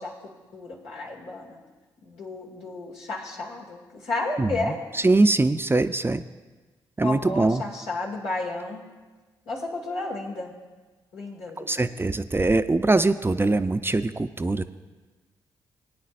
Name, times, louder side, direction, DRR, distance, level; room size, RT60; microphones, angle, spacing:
voice 1, 0.0-1.6 2.0-4.8 7.0-8.8 9.5-10.5 11.1-11.8, left 2 dB, 85° left, -3 dB, 2.3 m, -32 dB
voice 2, 5.0-6.2 7.0-7.6 11.6-14.6, right 2 dB, 20° right, 11 dB, 0.5 m, -22 dB
19.0 x 9.3 x 2.5 m, 1.3 s
hypercardioid pair, 40°, 11 cm